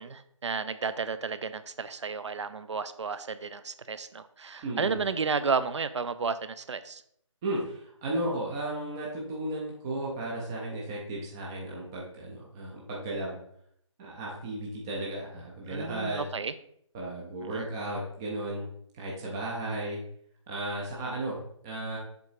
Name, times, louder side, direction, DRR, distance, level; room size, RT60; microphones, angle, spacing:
voice 1, 0.0-7.0 15.7-16.5 17.5-17.6, right 5 dB, 60° right, 13 dB, 0.6 m, -32 dB
voice 2, 4.6-5.0 7.4-13.4 14.0-16.3 16.9-18.7 18.9-20.0 20.5-21.4 21.6-22.0, right 1 dB, 10° right, -4 dB, 0.4 m, -34 dB
7.1 x 3.9 x 4.6 m, 0.69 s
figure-of-eight pair, 160°, 17 cm